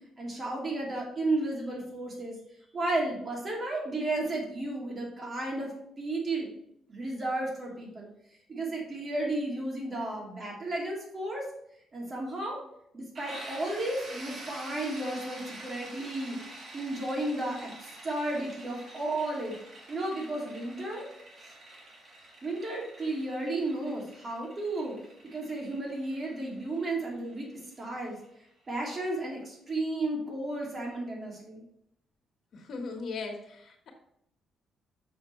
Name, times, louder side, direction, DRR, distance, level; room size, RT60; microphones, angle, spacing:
voice 1, 0.2-2.4 2.7-6.5 6.9-8.1 8.5-11.5 11.9-12.6 12.9-19.6 19.9-21.1 22.4-25.0 25.2-27.5 27.8-28.2 28.7-31.6, right 2 dB, 35° right, -3 dB, 2.7 m, -33 dB
sound 1, 13.1-28.7, right 1 dB, 50° right, 2.6 m, -47 dB
voice 2, 32.5-33.9, left 4 dB, 60° left, 2 dB, 1.6 m, -38 dB
6.7 x 6.7 x 3.2 m, 0.74 s
cardioid pair, 125°, 0 cm